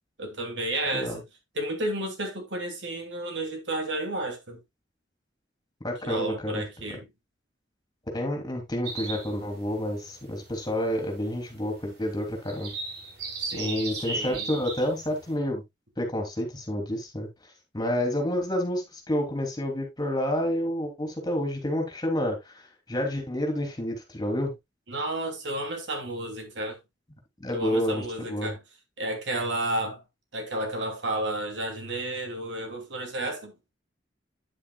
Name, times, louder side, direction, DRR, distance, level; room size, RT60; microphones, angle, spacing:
voice 1, 0.2-1.2 1.5-4.6 6.0-7.1 13.4-14.5 24.9-26.8 27.5-28.6 29.0-30.0 30.3-33.5, right 1 dB, 85° right, 2.8 m, -32 dB
voice 2, 5.8-7.0 8.1-12.7 13.5-15.6 16.0-17.3 17.7-22.6 22.9-24.5 27.4-28.5, equal, 25° left, 3.2 m, -29 dB
sound 1, 8.8-15.3, right 3 dB, 65° right, 3.4 m, -38 dB
9.6 x 8.7 x 2.3 m
head